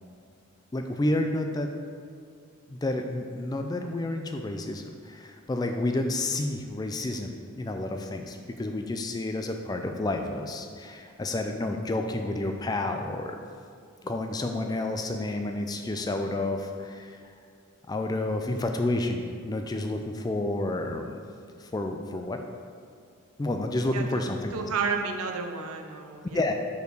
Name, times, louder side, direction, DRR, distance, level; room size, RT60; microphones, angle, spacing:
voice 1, 0.7-1.7 2.7-13.4 14.0-17.2 17.9-21.2 21.6-22.4 23.4-24.5 26.3-26.5, left 2 dB, 20° left, 4 dB, 0.3 m, -30 dB
voice 2, 23.9-26.4, right 5 dB, 85° right, 4 dB, 0.6 m, -32 dB
5.3 x 4.5 x 4.6 m, 2.2 s
head